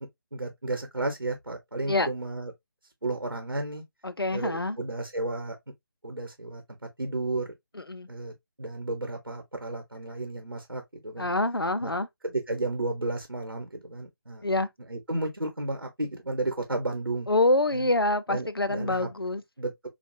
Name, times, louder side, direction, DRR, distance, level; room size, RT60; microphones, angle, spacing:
voice 1, 0.3-2.5 3.0-3.8 4.3-5.6 6.0-6.6 7.0-7.5 8.1-8.3 8.6-11.3 11.8-11.9 12.2-14.4 14.9-17.3 17.7-17.9 18.3-19.1 19.6-19.9, right 2 dB, 85° right, 1.1 m, -32 dB
voice 2, 4.0-4.8 7.8-8.1 11.2-12.1 14.4-14.7 17.3-19.4, left 2 dB, 90° left, 0.6 m, -26 dB
5.2 x 2.4 x 2.6 m
figure-of-eight pair, 150°, 12 cm